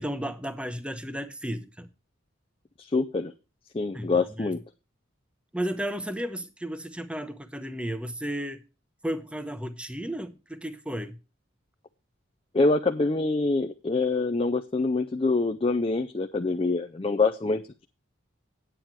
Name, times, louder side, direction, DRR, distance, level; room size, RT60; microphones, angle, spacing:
voice 1, 0.0-1.9 3.9-4.5 5.5-8.6 9.0-11.2, equal, 5° right, 0.7 m, -33 dB
voice 2, 2.8-3.3 3.7-4.6 12.5-17.8, left 3 dB, 25° left, 0.4 m, -25 dB
9.2 x 8.7 x 4.6 m
head